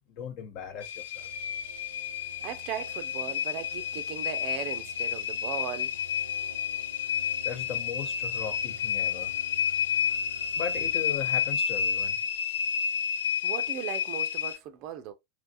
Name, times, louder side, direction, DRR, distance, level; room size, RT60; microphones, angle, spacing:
voice 1, 0.2-1.3 7.4-9.3 10.6-12.2, left 7 dB, 40° left, 0.8 m, -37 dB
sound 1, 0.8-14.6, left 8 dB, 60° left, 0.4 m, -30 dB
sound 2, 1.1-11.8, right 4 dB, 85° left, 1.2 m, -51 dB
voice 2, 2.4-5.9 13.4-15.1, right 10 dB, 40° right, 0.5 m, -38 dB
3.3 x 3.2 x 2.5 m
figure-of-eight pair, 90°, 0 cm